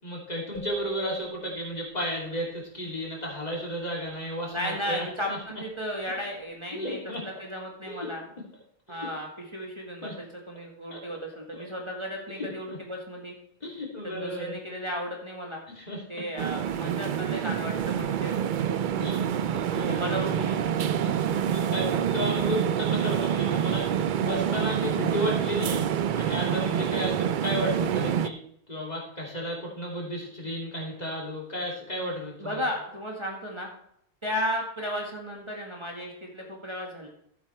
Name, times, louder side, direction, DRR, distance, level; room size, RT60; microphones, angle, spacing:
voice 1, 0.0-5.4 6.7-7.4 7.9-8.1 8.4-8.5 8.9-9.1 10.0-10.1 10.9-11.0 11.5-11.6 12.4-12.8 13.6-14.6 15.7-16.0 19.0-20.5 21.0-25.9 26.1-28.4 28.7-32.6, equal, 35° left, -3 dB, 2.9 m, -33 dB
sound 1, 0.5-2.8, right 3 dB, 55° left, 1.3 m, -44 dB
voice 2, 4.5-8.2 8.9-13.3 14.0-15.6 16.1-19.0 19.8-20.6 32.4-33.7 34.2-37.1, equal, 25° right, -1 dB, 1.7 m, -34 dB
sound 2, 16.4-28.3, right 9 dB, 60° right, 0.6 m, -27 dB
13.5 x 8.0 x 3.3 m, 0.70 s
omnidirectional pair, 1.2 m